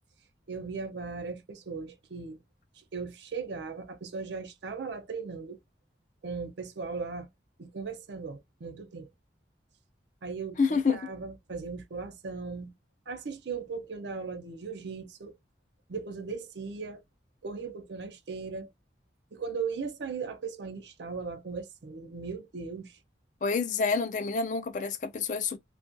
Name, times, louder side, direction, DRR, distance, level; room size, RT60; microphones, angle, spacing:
voice 1, 0.5-2.4 2.8-5.6 6.2-7.3 7.6-9.1 10.2-12.7 13.1-15.3 15.9-17.0 17.4-18.7 19.3-23.0, right 5 dB, 80° right, 0.5 m, -38 dB
voice 2, 10.6-11.0 23.4-25.6, left 4 dB, 45° left, 0.4 m, -28 dB
2.3 x 2.3 x 2.5 m
head